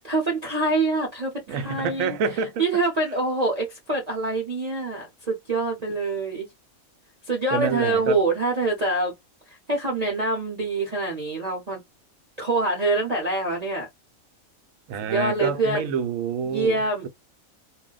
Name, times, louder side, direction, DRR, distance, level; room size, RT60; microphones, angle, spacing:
voice 1, 0.0-2.2 2.6-6.5 7.3-9.1 9.5-11.8 12.4-13.9 15.0-15.8 16.4-17.1, right 2 dB, 35° right, 0.7 m, -25 dB
voice 2, 1.5-2.6 7.5-8.2 14.9-17.1, right 6 dB, 75° right, 0.9 m, -28 dB
2.4 x 2.1 x 3.8 m
omnidirectional pair, 1.5 m